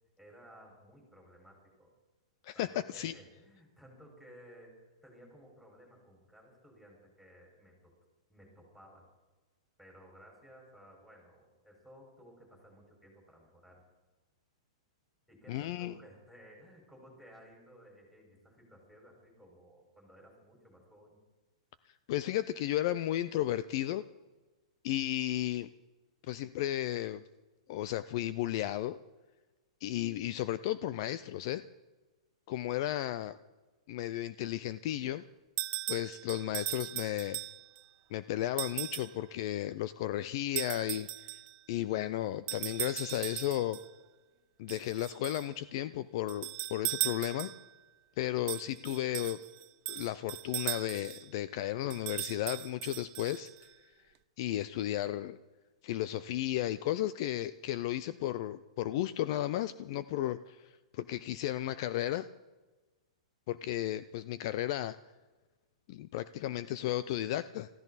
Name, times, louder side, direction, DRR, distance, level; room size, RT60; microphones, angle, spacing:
voice 1, 0.2-1.9 2.5-7.9 8.3-9.1 9.8-13.8 15.3-21.2, equal, 5° left, -2 dB, 5.5 m, -57 dB
voice 2, 2.4-3.1 15.5-15.9 22.1-24.0 24.8-25.7 26.2-27.2 27.7-29.0 29.8-31.6 32.5-33.4 33.9-35.2 35.9-37.4 38.1-41.3 41.7-43.8 44.6-47.5 48.2-49.4 49.9-53.7 54.4-55.4 55.8-62.3 63.5-65.0 65.9-67.7, left 13 dB, 45° left, 15 dB, 0.5 m, -34 dB
sound 1, 35.6-37.8 38.6-39.2 40.6-41.6 42.5-43.9 44.7-45.5 46.3-47.7 48.5-51.3 51.9-53.7, right 21 dB, 35° right, 0.5 m, -38 dB
21.0 x 15.0 x 4.2 m, 1.2 s
hypercardioid pair, 150°, 3 cm